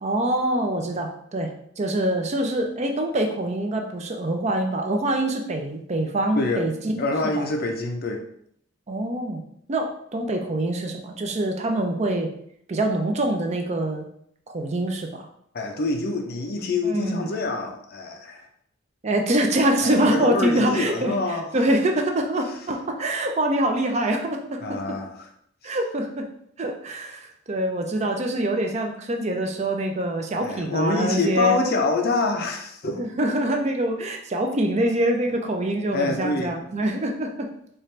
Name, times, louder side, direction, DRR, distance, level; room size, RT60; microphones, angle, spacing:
voice 1, 0.0-1.5 1.8-7.5 8.9-9.4 9.7-12.3 12.7-14.1 14.5-15.3 16.9-17.2 19.0-21.2 21.5-24.6 25.6-26.3 26.6-31.6 33.0-37.5, right 1 dB, 35° right, 3 dB, 0.4 m, -25 dB
voice 2, 6.4-6.7 7.0-8.2 15.5-18.5 19.8-21.5 24.6-25.3 25.6-25.8 30.4-33.1 35.9-36.5, left 3 dB, 50° left, 4 dB, 0.5 m, -26 dB
4.4 x 2.5 x 3.2 m, 0.69 s
head